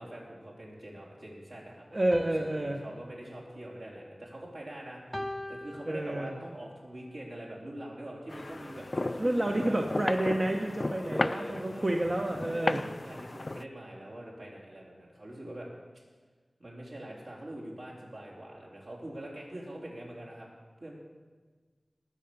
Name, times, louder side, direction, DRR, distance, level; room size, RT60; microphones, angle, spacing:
voice 1, 0.0-9.8 11.0-12.0 12.4-15.7 16.6-20.5 20.8-20.9, right 1 dB, 70° right, -4 dB, 3.9 m, -44 dB
voice 2, 1.9-2.8 5.9-6.3 9.2-12.8, right 1 dB, 40° right, 2 dB, 1.0 m, -29 dB
sound 1, 2.1-4.6 5.1-6.7, left 1 dB, 10° left, 0.7 m, -42 dB
sound 2, 8.3-13.6, left 2 dB, 45° left, 0.3 m, -35 dB
19.5 x 6.9 x 6.9 m, 1.4 s
wide cardioid pair, 60°, 0 cm